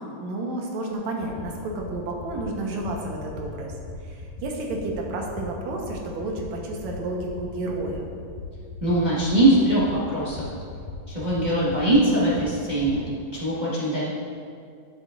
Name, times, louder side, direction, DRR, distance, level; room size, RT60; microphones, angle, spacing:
voice 1, 0.0-3.7 4.0-8.1, right 2 dB, 70° right, 0 dB, 2.2 m, -31 dB
sound 1, 0.9-1.0 1.2-1.4 1.7-1.9 2.2-2.4 2.7-2.9 3.2-3.4 3.7-3.9 4.2-4.4 4.7-4.9 5.2-5.4 5.7-5.9 6.2-6.4 6.7-6.9 7.2-7.4 7.7-7.9 8.2-8.4 8.7-8.9 9.2-9.4 9.7-9.9 10.2-10.4 10.7-10.9 11.2-11.4 11.7-11.9 12.2-12.4 12.7-12.9, left 5 dB, 70° left, 2.1 m, -39 dB
voice 2, 8.8-10.4 11.1-13.0 13.3-14.0, right 1 dB, 40° right, -9 dB, 0.6 m, -21 dB
12.5 x 7.8 x 2.5 m, 2.3 s
omnidirectional pair, 3.6 m